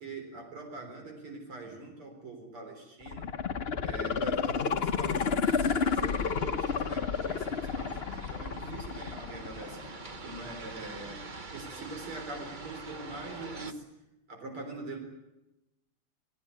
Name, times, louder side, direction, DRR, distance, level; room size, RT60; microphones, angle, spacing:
voice 1, 0.0-3.3 3.8-9.8 10.2-11.2 11.5-13.8 14.3-15.0, right 2 dB, 90° right, 4 dB, 4.8 m, -43 dB
sound 1, 3.0-10.0 10.4-10.5, left 6 dB, 50° left, 0.7 m, -31 dB
sound 2, 5.4-13.7, right 3 dB, 30° right, 1.0 m, -45 dB
27.5 x 18.5 x 8.4 m, 0.97 s
omnidirectional pair, 2.3 m